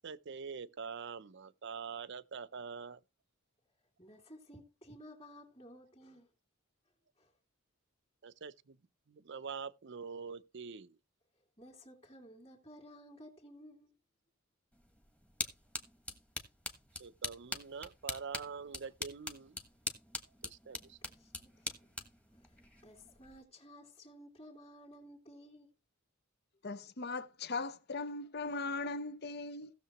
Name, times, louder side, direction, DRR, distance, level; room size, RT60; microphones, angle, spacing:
voice 1, 0.0-3.0 8.2-8.8 9.1-10.9 17.0-19.6 20.4-21.0, right 5 dB, 60° right, 0.6 m, -45 dB
voice 2, 4.0-6.3 7.2-7.3 11.6-13.9 21.0-21.9 22.3-25.7, equal, 30° left, 2.5 m, -55 dB
sound 1, 14.7-23.4, left 1 dB, 5° left, 1.2 m, -44 dB
voice 3, 26.6-29.7, left 3 dB, 50° left, 0.8 m, -39 dB
16.5 x 6.7 x 3.0 m
head